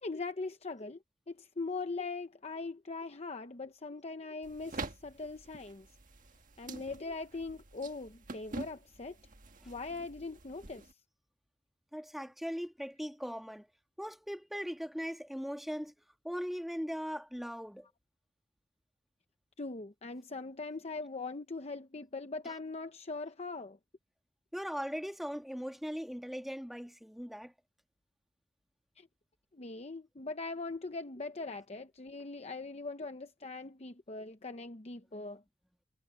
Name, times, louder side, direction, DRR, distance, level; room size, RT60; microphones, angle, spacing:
voice 1, 0.0-1.0 1.3-5.9 6.6-9.2 9.7-10.9 19.6-23.8 29.0-29.1 29.5-35.4, left 3 dB, 35° left, 0.8 m, -41 dB
sound 1, 4.4-10.9, right 3 dB, 45° right, 1.5 m, -47 dB
voice 2, 11.9-13.7 14.0-15.9 16.2-17.9 24.5-27.5, equal, ahead, 1.6 m, -39 dB
head